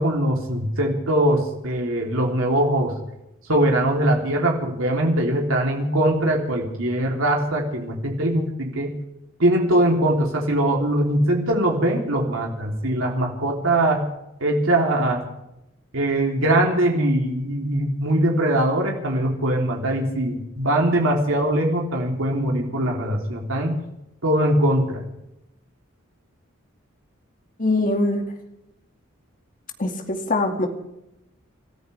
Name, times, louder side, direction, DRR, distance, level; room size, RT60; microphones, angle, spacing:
voice 1, 0.0-2.9 3.5-8.9 9.4-14.1 14.4-15.2 15.9-23.8 24.2-25.0, right 1 dB, 80° right, 0 dB, 3.5 m, -21 dB
voice 2, 27.6-28.2 29.8-30.7, left 2 dB, 40° left, 4 dB, 2.4 m, -22 dB
29.0 x 14.0 x 3.5 m, 0.87 s
head